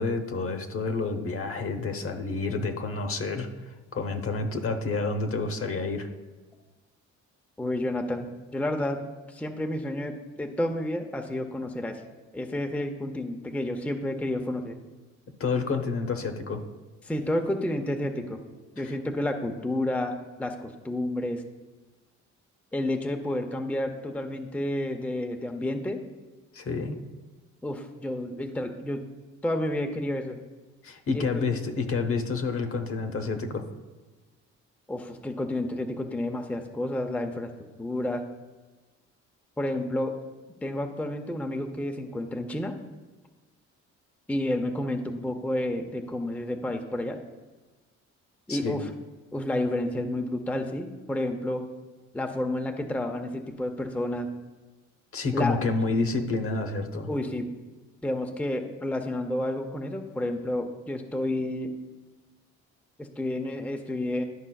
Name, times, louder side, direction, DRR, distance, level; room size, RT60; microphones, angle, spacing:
voice 1, 0.0-6.1 15.4-16.6 18.8-19.0 26.5-27.0 30.8-33.6 48.5-48.8 55.1-57.1, left 3 dB, 45° left, 6 dB, 0.9 m, -29 dB
voice 2, 7.6-9.0 9.3-12.0 12.3-14.8 17.0-18.4 18.8-21.4 22.7-26.0 27.6-29.0 29.4-30.4 31.1-31.4 34.9-37.5 37.8-38.2 39.6-40.1 40.6-42.7 44.3-47.2 48.5-48.9 49.3-51.7 52.1-54.3 55.3-55.6 57.1-57.5 58.0-61.7 63.0-64.2, left 1 dB, 5° left, 5 dB, 0.5 m, -30 dB
11.0 x 5.4 x 2.3 m, 1.2 s
cardioid pair, 90°, 30 cm